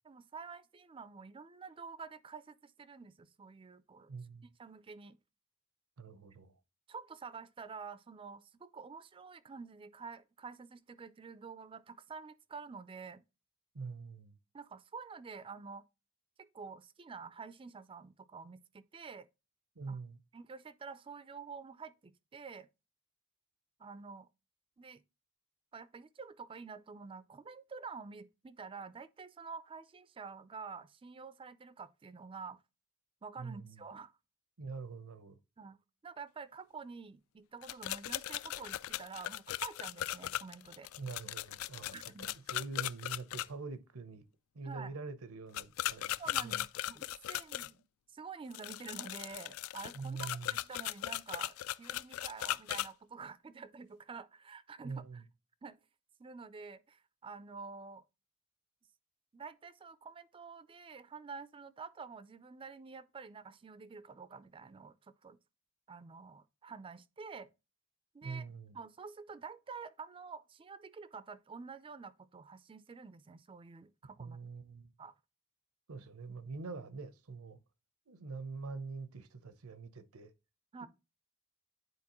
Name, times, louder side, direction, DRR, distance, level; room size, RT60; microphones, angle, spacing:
voice 1, 0.0-4.1 4.6-5.2 6.9-13.2 14.5-15.8 16.4-19.3 19.9-20.0 20.3-22.7 23.8-24.3 24.8-25.0 25.7-32.6 33.2-34.1 35.6-40.9 41.9-42.3 44.6-45.0 46.2-47.9 48.1-55.2 55.6-55.8 56.2-58.0 59.3-65.4 65.9-67.5 68.1-68.4 68.7-74.4 75.0-75.1 80.7-80.9, right 5 dB, 25° right, 0.4 m, -48 dB
voice 2, 4.1-4.5 6.0-6.5 13.7-14.4 19.8-20.2 33.4-33.8 34.6-35.4 41.0-44.2 44.5-46.7 49.9-50.6 54.8-55.2 68.2-68.8 74.2-74.9 75.9-77.6 78.1-80.3 80.8-80.9, right 4 dB, 85° right, 0.7 m, -44 dB
sound 1, 37.6-43.5 45.5-47.7 48.5-52.9, left 13 dB, 70° left, 0.3 m, -38 dB
9.6 x 4.1 x 2.9 m
head